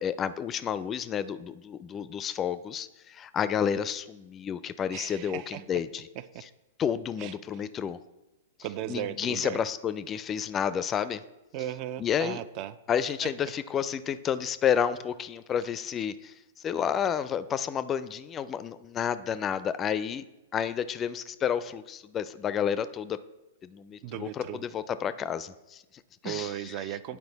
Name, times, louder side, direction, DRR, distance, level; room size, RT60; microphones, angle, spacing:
voice 1, 0.0-6.1 6.8-8.0 8.9-11.2 12.0-12.4 12.9-20.3 20.5-23.2 23.6-26.7, left 8 dB, 25° left, 14 dB, 0.4 m, -30 dB
voice 2, 4.9-5.6 6.2-6.4 7.2-7.3 8.6-9.6 11.5-12.8 13.2-13.3 24.0-24.6 26.2-27.2, right 11 dB, 45° right, 15 dB, 0.4 m, -36 dB
9.6 x 4.3 x 4.0 m, 1.0 s
hypercardioid pair, 110°, 0 cm